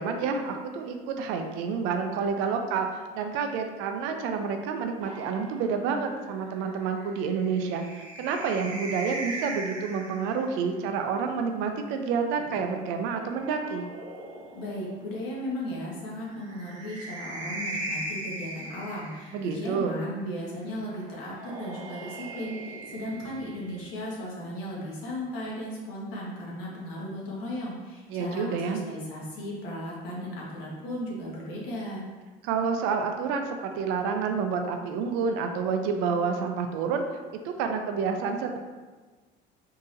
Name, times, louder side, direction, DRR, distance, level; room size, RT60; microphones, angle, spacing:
voice 1, 0.0-2.9 3.1-13.8 19.3-20.0 28.1-28.8 32.4-37.0 37.4-38.6, right 5 dB, 80° right, 5 dB, 0.5 m, -29 dB
sound 1, 5.0-10.5 11.9-14.9 16.3-19.7 21.0-23.9, right 2 dB, 35° right, 0.7 m, -40 dB
voice 2, 14.5-32.0, equal, 75° left, -5 dB, 1.2 m, -36 dB
3.9 x 2.8 x 2.5 m, 1.3 s
cardioid pair, 170°, 20 cm